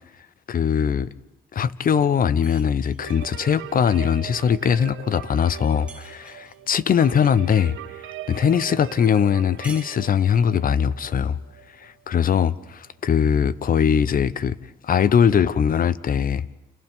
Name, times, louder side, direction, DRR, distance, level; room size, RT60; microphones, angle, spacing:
voice 1, 0.5-1.1 1.5-7.8 8.3-11.4 11.8-14.5 14.8-16.4, left 7 dB, 45° left, 0.8 m, -21 dB
sound 1, 2.4-3.3 5.9-6.7 9.6-10.6, right 2 dB, 5° right, 1.7 m, -46 dB
sound 2, 3.0-12.7, right 13 dB, 80° right, 0.8 m, -41 dB
29.5 x 28.5 x 3.6 m
cardioid pair, 90°, 20 cm